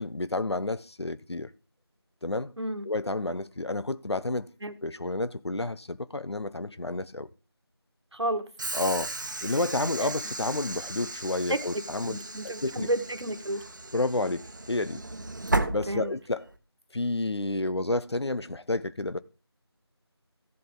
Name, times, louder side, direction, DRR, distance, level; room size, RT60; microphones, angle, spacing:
voice 1, 0.0-1.5 2.2-2.5 2.8-4.5 4.8-7.3 8.7-9.1 9.4-12.2 12.4-12.9 13.9-15.0 15.7-16.4 16.9-19.2, left 2 dB, 75° left, 0.9 m, -30 dB
voice 2, 8.1-8.4 10.0-10.1 11.5-13.6 15.4-16.1, right 1 dB, 80° right, 1.7 m, -32 dB
Train / Sliding door, 8.6-16.6, right 2 dB, 45° right, 1.1 m, -35 dB
14.5 x 7.7 x 3.8 m
figure-of-eight pair, 170°, 14 cm